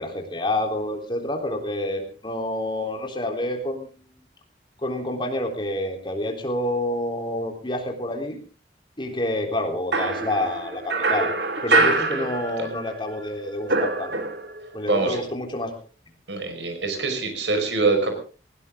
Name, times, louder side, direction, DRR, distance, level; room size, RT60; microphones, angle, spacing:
voice 1, 0.0-4.2 4.8-8.4 9.0-11.3 11.6-14.2 14.7-15.8, left 1 dB, 25° left, 3 dB, 3.7 m, -28 dB
sound 1, 9.9-12.9 13.2-14.7, right 3 dB, 65° right, 2.7 m, -24 dB
voice 2, 11.7-12.3 12.6-12.7 14.9-15.2 16.3-18.1, right 3 dB, 85° right, 5 dB, 5.4 m, -25 dB
19.5 x 17.5 x 3.8 m, 0.37 s
head